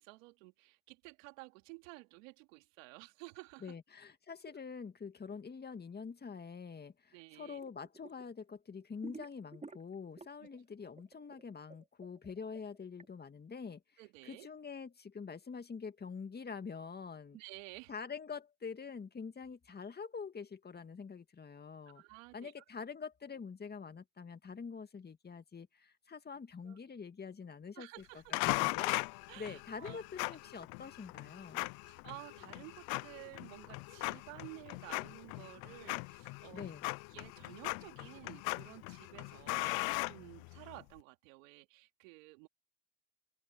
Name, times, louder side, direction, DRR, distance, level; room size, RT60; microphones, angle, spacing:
voice 1, 0.0-3.7 4.5-4.6 7.1-7.6 10.4-10.5 14.0-14.5 17.3-17.9 21.9-22.5 26.6-26.8 27.8-28.3 29.3-30.0 31.9-36.7 37.1-42.5, right 26 dB, 80° right, 3.0 m, -53 dB
voice 2, 3.6-17.4 17.9-22.0 22.3-27.9 28.5-28.9 29.4-31.7 36.5-36.9, left 5 dB, 25° left, 2.2 m, -46 dB
sound 1, 7.6-8.3 8.6-10.6 10.8-13.1, right 3 dB, 20° right, 4.6 m, -52 dB
sound 2, 28.3-40.8, left 27 dB, 70° left, 0.8 m, -39 dB
supercardioid pair, 85°, 38 cm